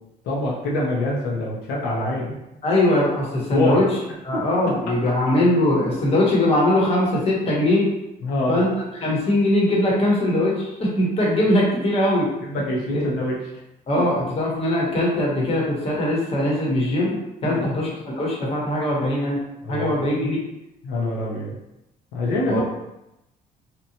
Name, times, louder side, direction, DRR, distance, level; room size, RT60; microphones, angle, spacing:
voice 1, 0.2-2.4 3.5-3.8 8.2-8.6 12.4-13.4 17.4-17.7 19.6-20.0 20.8-21.6 22.1-22.6, left 1 dB, 85° left, -4 dB, 0.6 m, -25 dB
voice 2, 2.6-3.9 4.2-7.9 8.5-8.7 9.0-12.3 12.9-13.0 13.9-17.1 17.4-17.9 18.2-19.4 19.7-20.4 22.5-22.6, left 1 dB, 35° left, -4 dB, 0.9 m, -21 dB
2.8 x 2.1 x 2.8 m, 0.91 s
cardioid pair, 110°, 17 cm